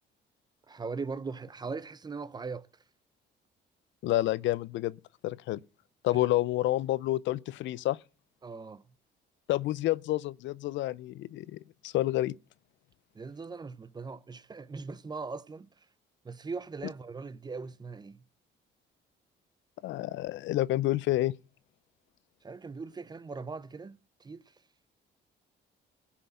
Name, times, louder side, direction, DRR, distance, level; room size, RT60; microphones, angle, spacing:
voice 1, 0.7-2.7 8.4-8.8 13.1-15.7 16.2-18.2 22.4-24.4, right 4 dB, 20° right, 0.6 m, -40 dB
voice 2, 4.0-5.0 5.2-5.6 6.0-8.0 9.5-12.3 19.8-21.4, left 15 dB, 80° left, 0.5 m, -29 dB
17.0 x 5.8 x 7.9 m
cardioid pair, 120°, 19 cm